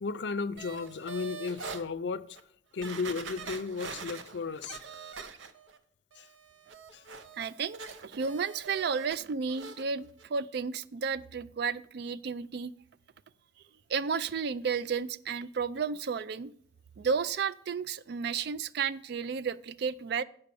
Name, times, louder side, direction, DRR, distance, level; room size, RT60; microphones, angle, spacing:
voice 1, 0.0-2.2 2.7-4.8 6.2-6.3 6.9-7.0, left 4 dB, 65° left, 0.5 m, -34 dB
sound 1, 0.6-1.8 2.4-2.5 2.8-5.8 6.1-9.2 9.5-9.8 10.2-10.3, right 5 dB, 85° right, 0.7 m, -44 dB
voice 2, 7.4-12.7 13.9-16.5 17.0-20.2, right 5 dB, 55° right, 0.4 m, -32 dB
7.9 x 5.7 x 6.8 m
head